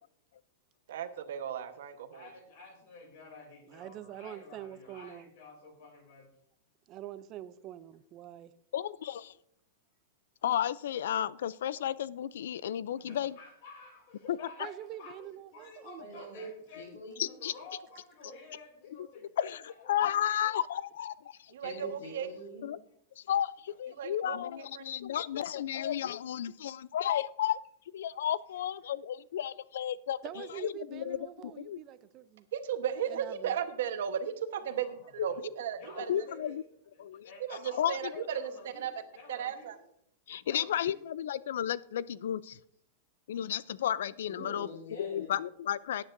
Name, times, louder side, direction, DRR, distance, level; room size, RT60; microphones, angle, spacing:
voice 1, 0.9-2.3 21.5-22.3 24.0-24.4 24.7-24.8 32.5-36.3 37.5-38.5 38.8-38.9 39.3-39.8, right 9 dB, 65° right, 1.0 m, -35 dB
voice 2, 2.1-6.3 12.9-16.8 17.2-19.7 20.0-20.5 34.6-35.4 35.7-36.6 36.9-39.7 40.5-40.9, left 3 dB, 40° left, 2.8 m, -51 dB
voice 3, 3.7-5.3 6.9-8.5 14.6-16.4 30.2-32.5 33.1-33.5, right 12 dB, 25° right, 0.4 m, -45 dB
voice 4, 8.7-9.3 10.4-13.4 14.3-14.4 17.2-17.5 19.4-21.5 22.6-22.8 23.2-27.6 27.9-31.8 35.2-35.3 36.0-36.6 37.0-37.3 37.8-38.1 40.3-42.6 43.3-44.7 45.0-46.0, left 10 dB, 70° left, 0.4 m, -33 dB
voice 5, 16.0-16.5 16.7-17.3 21.6-22.7 44.3-45.4, equal, 90° left, 4.1 m, -44 dB
17.0 x 9.7 x 2.6 m
supercardioid pair, 180°, 0 cm